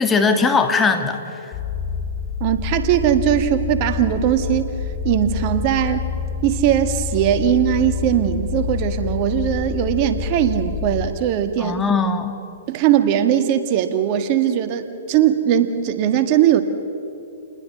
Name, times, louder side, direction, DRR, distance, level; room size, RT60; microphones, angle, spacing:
voice 1, 0.0-1.5 11.6-12.4, left 4 dB, 15° left, 6 dB, 1.7 m, -20 dB
sound 1, 1.5-11.1, left 6 dB, 35° left, 4.8 m, -27 dB
voice 2, 2.4-4.7 5.0-6.1 6.4-11.8 12.7-16.6, right 10 dB, 40° right, 8 dB, 1.6 m, -19 dB
29.5 x 20.5 x 6.1 m, 2.8 s
hypercardioid pair, 125°, 0 cm